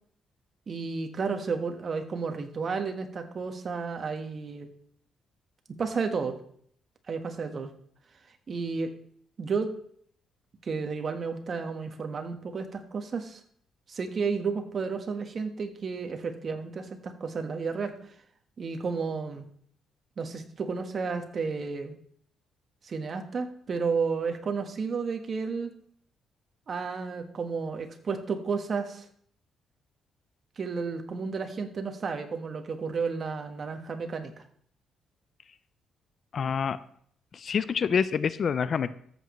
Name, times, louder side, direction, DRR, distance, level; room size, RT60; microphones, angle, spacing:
voice 1, 0.7-4.7 5.8-6.4 7.1-7.7 8.5-8.9 9.4-9.7 10.6-13.4 13.9-17.9 18.6-19.4 20.2-21.9 22.8-25.7 26.7-29.1 30.6-34.4, right 5 dB, 45° right, 6 dB, 1.4 m, -32 dB
voice 2, 36.3-36.8 37.4-38.9, left 6 dB, 50° left, 15 dB, 0.4 m, -26 dB
13.5 x 8.1 x 3.1 m, 0.63 s
cardioid pair, 90°, 0 cm